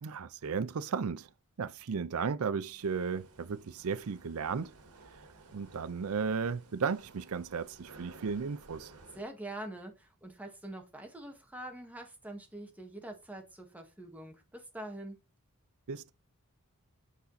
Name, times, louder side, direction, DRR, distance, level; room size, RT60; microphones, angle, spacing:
voice 1, 0.0-1.3 1.6-4.7 5.5-8.9 15.9-16.1, right 5 dB, 75° right, 0.5 m, -34 dB
sound 1, 2.8-9.2, right 3 dB, 90° right, 1.9 m, -56 dB
voice 2, 9.1-15.2, right 1 dB, 5° right, 1.8 m, -44 dB
8.2 x 5.1 x 4.1 m
head